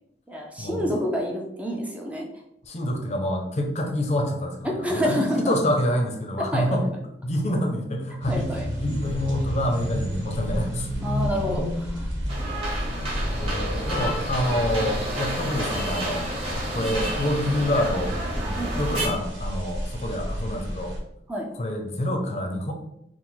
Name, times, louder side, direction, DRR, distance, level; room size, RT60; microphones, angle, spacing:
voice 1, 0.3-2.3 4.6-5.6 6.4-6.9 8.3-8.7 11.0-12.1 12.4-12.6 13.6-14.2 16.8-17.0 18.6-18.7 21.3-21.5, equal, 10° right, -1 dB, 0.5 m, -28 dB
voice 2, 2.7-6.8 7.2-8.5 8.8-10.9 13.3-16.3 16.7-21.0 21.6-22.7, left 1 dB, 35° left, 3 dB, 0.6 m, -27 dB
sound 1, 8.2-21.0, equal, 90° right, 1.2 m, -31 dB
sound 2, 12.3-19.1, right 1 dB, 30° right, 1.2 m, -30 dB
4.7 x 2.1 x 3.8 m, 0.79 s
head